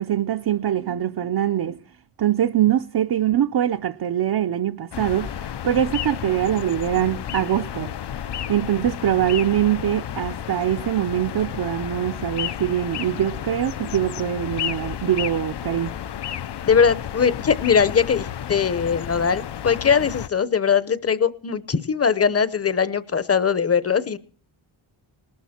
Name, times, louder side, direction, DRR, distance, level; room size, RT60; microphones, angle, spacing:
voice 1, 0.0-1.8 2.2-7.9 8.5-15.9, right 11 dB, 50° right, 0.7 m, -23 dB
sound 1, 4.9-20.3, left 10 dB, 55° left, 0.7 m, -32 dB
voice 2, 16.7-24.2, left 6 dB, 30° left, 0.9 m, -21 dB
19.5 x 13.0 x 4.4 m
wide cardioid pair, 100°, 49 cm